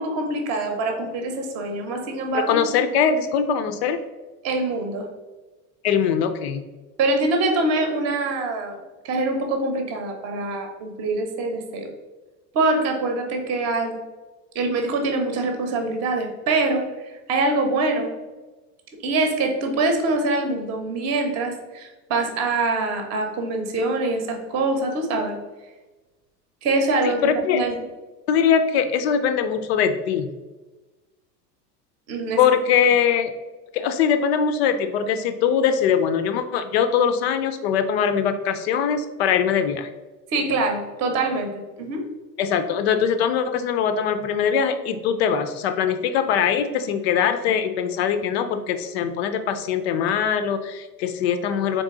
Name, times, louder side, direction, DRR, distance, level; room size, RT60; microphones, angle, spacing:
voice 1, 0.0-2.7 4.4-5.1 7.0-8.7 9.0-11.9 12.5-14.0 14.5-18.1 19.0-25.4 26.6-27.2 27.5-27.8 32.1-32.4 40.3-42.0, right 2 dB, 30° right, 4 dB, 0.8 m, -24 dB
voice 2, 2.3-4.0 5.8-6.6 27.0-27.6 28.3-30.3 32.4-33.3 33.7-39.9 42.4-51.8, left 7 dB, 40° left, 9 dB, 0.5 m, -22 dB
4.0 x 3.5 x 3.6 m, 1.2 s
figure-of-eight pair, 80°, 50 cm